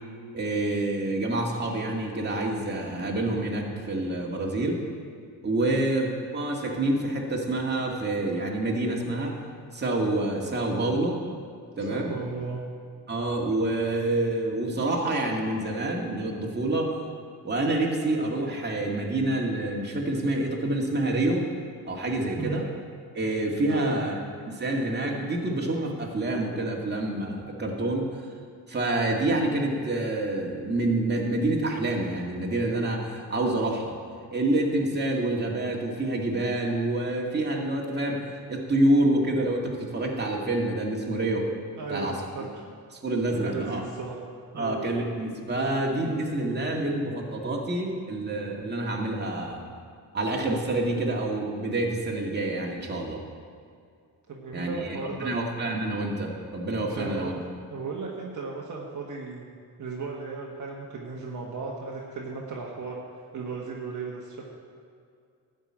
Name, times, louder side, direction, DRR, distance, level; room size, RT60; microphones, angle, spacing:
voice 1, 0.3-4.8 5.4-9.3 9.7-11.2 11.8-12.2 13.1-16.9 17.4-21.5 21.9-22.7 23.1-24.1 24.5-28.2 28.7-33.9 34.3-38.2 38.5-41.6 41.9-42.1 42.4-42.5 43.0-43.8 44.6-49.6 50.1-53.2 54.5-57.4, right 2 dB, 25° right, -1 dB, 2.0 m, -27 dB
voice 2, 11.9-12.6 22.4-22.7 23.7-24.0 41.8-42.6 43.3-44.2 44.5-44.8 54.3-55.3 56.9-57.4 57.7-59.4 59.8-63.0 63.3-64.5, right 4 dB, 50° right, -2 dB, 1.6 m, -35 dB
12.5 x 5.4 x 8.7 m, 2.3 s
cardioid pair, 100°, 38 cm